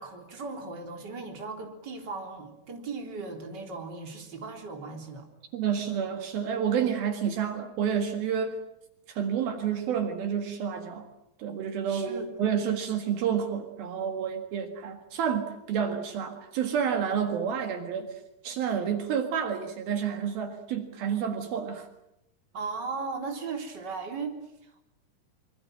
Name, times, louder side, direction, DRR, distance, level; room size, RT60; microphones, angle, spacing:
voice 1, 0.0-5.3 11.9-12.3 22.5-24.8, right 4 dB, 25° right, 3 dB, 4.1 m, -37 dB
voice 2, 5.5-8.6 9.1-11.1 11.4-18.1 18.4-21.9, right 8 dB, 70° right, 6 dB, 3.6 m, -29 dB
26.5 x 24.5 x 7.7 m, 0.81 s
omnidirectional pair, 4.5 m